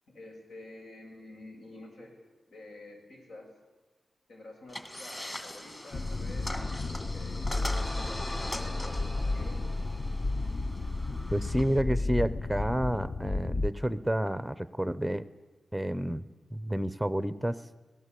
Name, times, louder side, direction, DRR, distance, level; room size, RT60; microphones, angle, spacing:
voice 1, 0.1-2.1 2.5-3.5 4.3-6.5 6.8-9.6, left 2 dB, 85° left, 1 dB, 7.4 m, -49 dB
sound 1, 4.7-11.8, left 1 dB, 15° left, 1.9 m, -41 dB
sound 2, 5.9-13.7, left 2 dB, 40° left, 0.7 m, -32 dB
voice 2, 11.3-15.2 15.7-16.3 16.5-17.6, equal, 5° right, 14 dB, 0.7 m, -30 dB
26.0 x 18.5 x 8.4 m, 1.2 s
wide cardioid pair, 155°, 0 cm